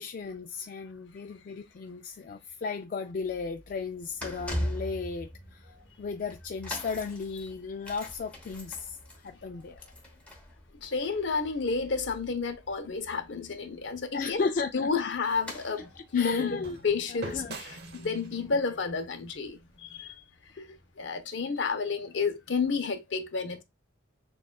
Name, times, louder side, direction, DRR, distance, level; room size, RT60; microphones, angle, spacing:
voice 1, 0.0-9.9 14.1-14.9 15.8-16.8 17.1-17.6, left 4 dB, 45° left, 0.3 m, -35 dB
sound 1, 3.1-19.5 19.7-20.0 20.8-20.9, equal, 5° left, 1.0 m, -43 dB
voice 2, 10.8-14.4 14.7-20.1 20.6-20.7 21.0-23.6, left 5 dB, 65° left, 0.7 m, -31 dB
sound 2, 14.4-20.6, right 3 dB, 55° right, 0.8 m, -47 dB
6.7 x 2.3 x 2.3 m
head